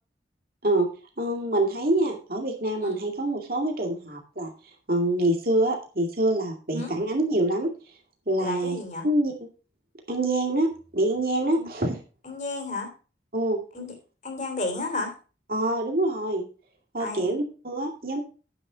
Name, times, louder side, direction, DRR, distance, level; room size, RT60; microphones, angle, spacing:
voice 1, 1.2-4.5 4.9-7.7 8.3-8.8 9.0-9.3 10.1-12.0 13.3-13.6 15.5-16.5 16.9-18.2, right 1 dB, 55° right, 2 dB, 2.3 m, -25 dB
voice 2, 8.4-9.1 11.5-11.7 12.2-12.9 13.7-13.9 14.2-15.1 17.0-17.3, left 2 dB, 45° left, 3 dB, 3.1 m, -32 dB
9.5 x 6.7 x 5.1 m, 0.36 s
head